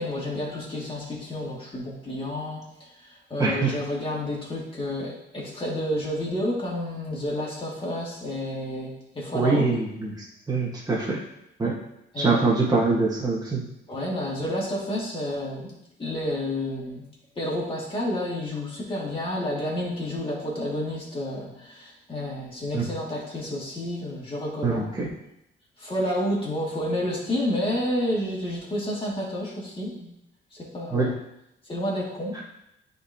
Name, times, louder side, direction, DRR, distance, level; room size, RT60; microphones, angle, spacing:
voice 1, 0.0-9.6 12.1-12.5 13.9-15.7 16.0-17.0 17.4-24.8 25.8-30.1 30.6-31.1 31.6-32.3, left 1 dB, 25° left, -4 dB, 2.4 m, -30 dB
voice 2, 3.4-3.7 9.3-11.2 11.6-11.8 12.2-13.6 22.7-22.9 24.6-25.1 30.9-31.1, right 3 dB, 20° right, -4 dB, 1.6 m, -24 dB
9.3 x 4.1 x 2.9 m, 0.82 s
cardioid pair, 90°, 20 cm